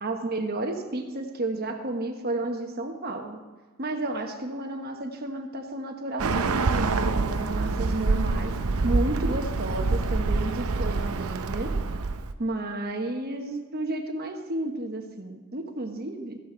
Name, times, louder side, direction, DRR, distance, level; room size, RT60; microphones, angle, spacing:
voice 1, 0.0-3.4 3.8-8.5 8.8-11.8 12.4-16.4, right 2 dB, 45° right, 4 dB, 1.2 m, -32 dB
Bird, 6.2-12.3, right 3 dB, 80° right, 0.6 m, -26 dB
14.5 x 9.5 x 3.9 m, 1.4 s
head